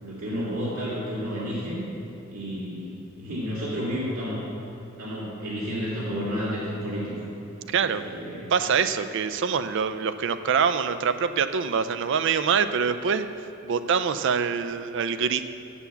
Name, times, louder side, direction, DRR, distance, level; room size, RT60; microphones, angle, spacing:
voice 1, 0.0-1.8 2.3-4.4 5.0-7.3 7.8-8.5, equal, 85° right, -9 dB, 2.3 m, -31 dB
voice 2, 7.7-8.0 8.5-13.3 13.6-15.4, right 6 dB, 60° right, 11 dB, 0.4 m, -24 dB
7.9 x 7.0 x 7.0 m, 2.8 s
head